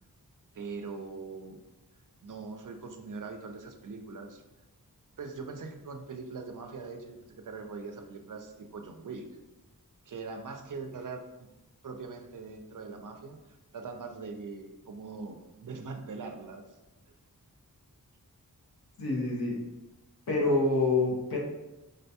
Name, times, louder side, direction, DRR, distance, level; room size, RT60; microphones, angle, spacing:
voice 1, 0.5-1.6 2.2-4.4 5.2-9.3 10.1-11.5 11.8-13.4 13.7-16.6, right 4 dB, 60° right, 4 dB, 0.5 m, -41 dB
voice 2, 19.0-19.6 20.3-21.4, left 2 dB, 80° left, -2 dB, 0.8 m, -26 dB
3.7 x 2.2 x 2.8 m, 1.0 s
wide cardioid pair, 55°, 36 cm